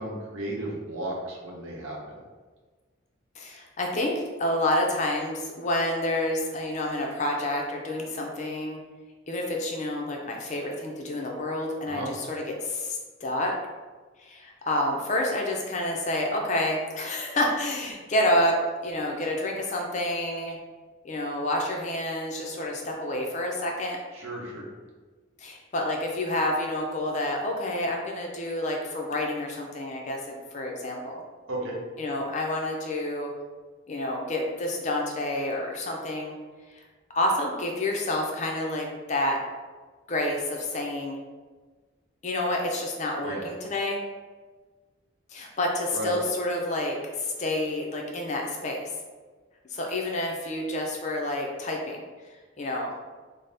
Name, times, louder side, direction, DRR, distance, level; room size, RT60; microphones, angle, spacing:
voice 1, 0.0-2.0 11.9-12.1 24.1-24.6 31.5-31.8 43.2-43.4 45.9-46.1, right 1 dB, 80° right, -3 dB, 0.8 m, -34 dB
voice 2, 3.4-8.8 9.3-13.5 14.2-18.6 18.8-20.6 21.0-24.0 25.4-31.2 32.0-33.3 33.9-36.4 37.1-39.4 40.1-41.2 42.2-44.0 45.3-48.9 49.7-52.0 52.6-52.9, left 1 dB, 35° left, 0 dB, 0.4 m, -29 dB
4.0 x 2.0 x 3.3 m, 1.4 s
head